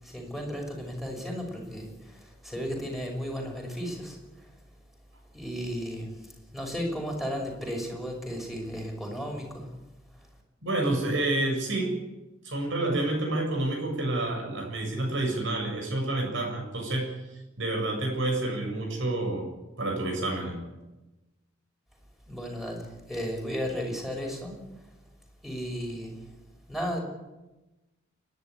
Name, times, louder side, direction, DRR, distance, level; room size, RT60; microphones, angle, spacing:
voice 1, 0.0-4.5 5.3-9.7 22.3-24.9 25.4-26.2 26.7-27.0, equal, ahead, 1 dB, 5.9 m, -35 dB
voice 2, 10.6-12.0 12.4-17.1 17.6-20.6, right 2 dB, 65° right, 2 dB, 7.5 m, -29 dB
29.0 x 11.5 x 9.9 m, 1.1 s
head